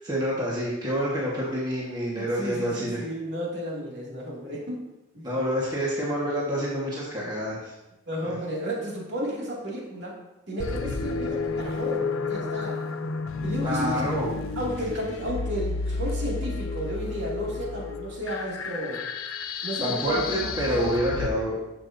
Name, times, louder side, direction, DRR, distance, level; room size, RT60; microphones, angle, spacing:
voice 1, 0.0-3.0 5.2-7.7 13.6-14.3 19.8-21.5, equal, 20° right, -6 dB, 1.4 m, -27 dB
voice 2, 2.1-4.8 5.1-5.3 8.1-10.2 10.5-12.8 13.4-14.1 14.6-19.0 19.6-20.9, equal, 60° right, -4 dB, 2.3 m, -33 dB
sound 1, 10.6-21.3, left 4 dB, 90° left, 0.6 m, -31 dB
10.5 x 6.9 x 2.7 m, 0.97 s
head